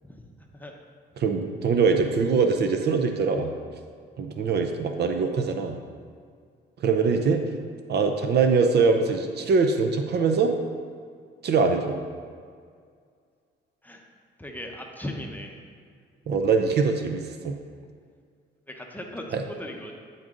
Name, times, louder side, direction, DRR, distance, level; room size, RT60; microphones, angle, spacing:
voice 1, 1.2-3.5 4.2-5.8 6.8-7.4 7.9-10.5 11.4-12.0 16.3-17.6 19.3-19.4, right 4 dB, 55° right, 6 dB, 0.5 m, -23 dB
voice 2, 14.4-15.6 16.3-16.4 18.7-19.9, left 1 dB, 10° left, 1 dB, 0.8 m, -38 dB
9.1 x 3.9 x 3.7 m, 2.1 s
cardioid pair, 90°, 20 cm